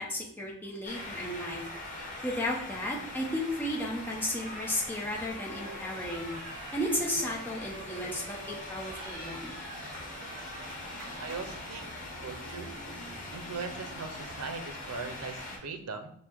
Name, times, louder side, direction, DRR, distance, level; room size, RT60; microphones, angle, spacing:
voice 1, 0.0-1.6 2.2-6.3 6.7-9.5, left 1 dB, 10° left, -2 dB, 0.6 m, -34 dB
sound 1, 0.8-15.6, left 1 dB, 35° left, 1.0 m, -42 dB
sound 2, 4.4-11.7, right 1 dB, 40° right, 1.5 m, -46 dB
voice 2, 11.2-12.8 13.3-16.1, right 4 dB, 90° right, 8 dB, 0.6 m, -40 dB
5.4 x 2.1 x 4.5 m, 0.69 s
head